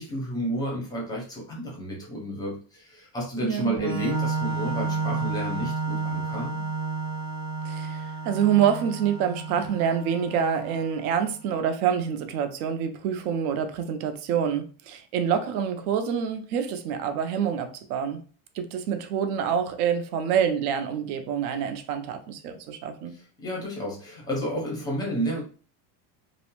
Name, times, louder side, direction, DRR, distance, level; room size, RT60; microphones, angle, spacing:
voice 1, 0.0-6.7 23.1-25.4, right 1 dB, 10° left, -3 dB, 0.5 m, -31 dB
voice 2, 3.4-4.0 7.7-18.2 18.5-23.1, right 8 dB, 75° right, 7 dB, 0.6 m, -27 dB
Organ, 3.8-11.3, right 4 dB, 35° right, 0.7 m, -31 dB
2.6 x 2.0 x 2.9 m, 0.41 s
cardioid pair, 170°, 44 cm